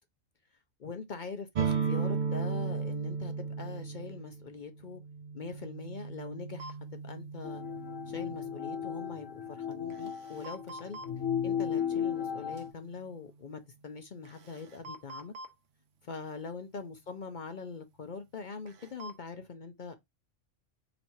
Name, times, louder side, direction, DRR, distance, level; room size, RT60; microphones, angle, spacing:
voice 1, 0.8-5.0 5.3-7.6 8.1-11.0 11.4-15.3 16.0-19.9, left 4 dB, 50° left, 0.6 m, -43 dB
sound 1, 1.5-9.2, right 6 dB, 50° right, 0.6 m, -36 dB
sound 2, 6.6-6.7 9.7-11.1 12.6-12.7 14.2-15.5 18.7-19.2, right 1 dB, 65° right, 1.1 m, -46 dB
sound 3, 7.4-12.7, left 8 dB, 70° left, 1.1 m, -35 dB
4.3 x 3.1 x 2.6 m
omnidirectional pair, 1.4 m